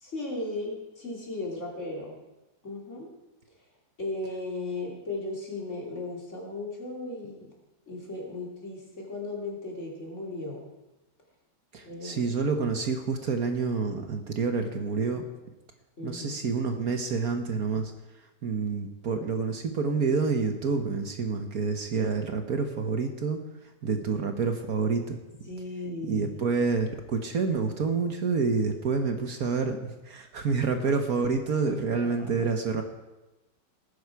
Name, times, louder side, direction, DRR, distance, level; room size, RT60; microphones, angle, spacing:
voice 1, 0.0-2.1 2.6-3.1 4.0-7.5 7.9-10.6 11.8-12.2 16.0-16.4 25.5-26.4 31.9-32.5, left 2 dB, 40° left, -2 dB, 3.5 m, -36 dB
voice 2, 11.7-15.2 16.0-17.9 18.4-23.4 23.8-25.5 26.1-32.8, right 4 dB, 60° right, 5 dB, 1.5 m, -28 dB
18.5 x 10.5 x 4.7 m, 1.0 s
omnidirectional pair, 1.9 m